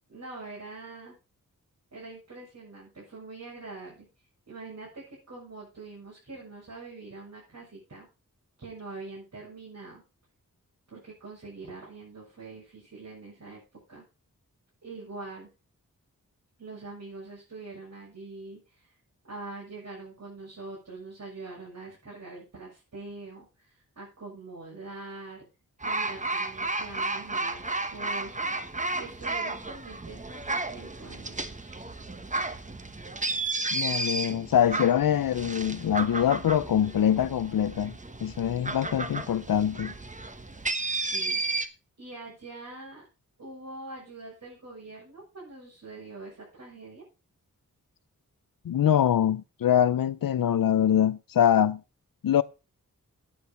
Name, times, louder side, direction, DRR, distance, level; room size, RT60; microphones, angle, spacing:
voice 1, 0.1-1.2 1.9-4.1 4.5-8.1 8.6-10.0 10.9-13.6 13.9-14.0 14.8-15.5 16.6-19.0 19.3-25.4 25.8-28.6 29.0-31.9 41.1-41.4 42.0-43.1 43.4-47.0, right 3 dB, 55° right, 6.8 m, -44 dB
sound 1, 25.8-41.7, right 2 dB, 20° right, 1.2 m, -33 dB
voice 2, 33.7-37.9 38.2-39.9 48.6-51.8 52.2-52.4, left 9 dB, 90° left, 0.7 m, -24 dB
9.6 x 9.0 x 5.7 m
wide cardioid pair, 100°, 33 cm